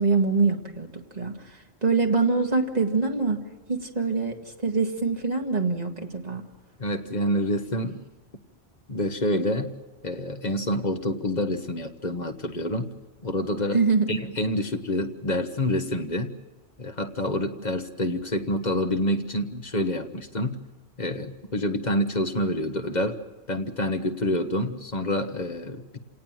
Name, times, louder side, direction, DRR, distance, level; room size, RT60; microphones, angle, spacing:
voice 1, 0.0-1.3 1.8-6.4 13.7-14.1, right 4 dB, 40° right, 3 dB, 2.1 m, -24 dB
voice 2, 6.8-8.0 8.9-9.7 10.0-12.9 13.2-13.8 14.1-16.3 16.8-20.6 21.0-23.2 23.5-26.0, left 1 dB, 40° left, 7 dB, 1.4 m, -27 dB
27.5 x 18.5 x 7.6 m, 1.1 s
omnidirectional pair, 1.1 m